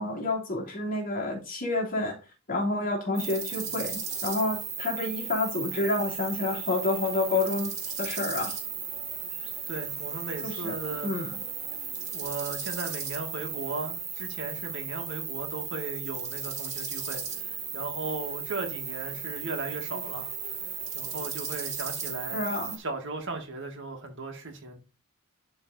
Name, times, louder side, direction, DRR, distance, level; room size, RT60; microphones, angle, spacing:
voice 1, 0.0-2.1 2.5-7.7 8.0-8.6 10.4-10.7 11.0-11.3 22.3-22.8, left 2 dB, 40° left, 2.9 m, -29 dB
sound 1, 3.2-22.8, right 6 dB, 30° right, 2.1 m, -35 dB
voice 2, 9.4-11.1 12.1-20.6 20.9-22.4 22.8-24.8, right 3 dB, 55° right, 1.8 m, -37 dB
11.5 x 3.9 x 4.0 m
head